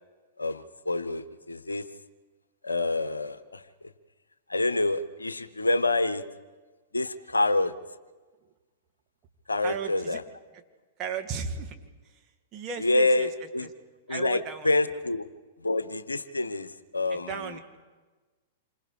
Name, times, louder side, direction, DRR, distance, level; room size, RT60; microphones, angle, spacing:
voice 1, 0.4-1.8 2.6-3.6 4.5-6.2 6.9-7.7 9.5-10.2 12.8-13.7 14.1-15.3 15.6-17.6, left 2 dB, 80° left, 13 dB, 1.0 m, -27 dB
voice 2, 9.6-10.2 11.0-11.8 12.1-12.2 12.5-13.3 13.6-13.7 14.1-14.7 17.1-17.6, right 6 dB, 30° right, 4 dB, 2.2 m, -35 dB
27.5 x 26.0 x 4.9 m, 1.3 s
figure-of-eight pair, 100°, 0 cm